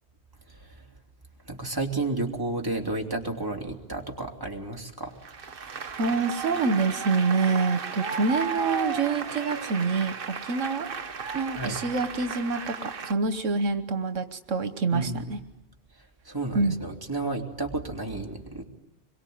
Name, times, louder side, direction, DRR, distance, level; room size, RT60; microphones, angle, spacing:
voice 1, 0.5-0.9 1.5-5.1 11.6-11.8 14.9-15.3 16.2-18.6, right 2 dB, 15° right, 1 dB, 2.9 m, -32 dB
Applause, 5.2-13.1, right 5 dB, 50° right, 1.3 m, -34 dB
voice 2, 6.0-10.9 11.3-15.4 16.5-16.8, right 4 dB, 80° right, 9 dB, 1.5 m, -26 dB
26.0 x 23.0 x 9.4 m, 0.95 s
omnidirectional pair, 1.3 m